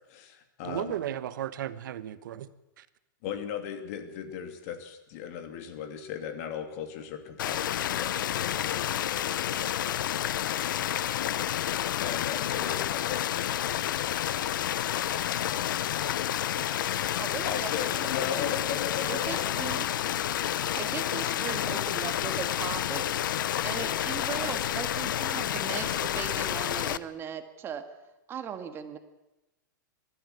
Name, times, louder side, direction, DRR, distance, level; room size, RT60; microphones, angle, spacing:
voice 1, 0.1-0.9 3.2-9.8 12.0-13.4 17.4-19.5, left 8 dB, 45° left, 7 dB, 2.8 m, -37 dB
voice 2, 0.6-2.5 2.8-2.9, right 11 dB, 70° right, 13 dB, 1.2 m, -35 dB
sound 1, 7.4-27.0, left 11 dB, 75° left, 0.8 m, -30 dB
voice 3, 17.2-17.7 18.2-18.8 19.1-19.9 20.7-23.1 23.6-27.8 28.3-29.0, right 8 dB, 20° right, 8 dB, 1.6 m, -38 dB
22.0 x 13.5 x 9.4 m, 0.97 s
supercardioid pair, 150°, 11 cm